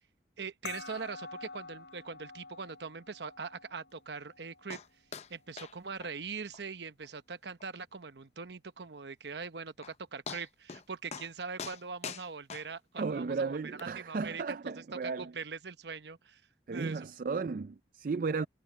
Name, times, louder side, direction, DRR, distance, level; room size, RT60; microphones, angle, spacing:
voice 1, 0.4-4.8 5.3-16.4 16.7-17.1, right 5 dB, 75° right, 0.9 m, -42 dB
sound 1, 0.7-5.7, left 4 dB, 80° left, 5.2 m, -49 dB
sound 2, 4.7-4.9 5.1-5.3 5.6-5.7 6.0-6.1 6.5-6.6 7.0-7.1 7.6-7.7 9.4-9.5 9.8-10.0 10.3-10.8 11.1-11.3 11.6-13.1 13.8-13.9, left 6 dB, 40° left, 0.6 m, -43 dB
voice 2, 13.0-15.3 16.7-18.5, right 4 dB, 50° right, 0.4 m, -34 dB
head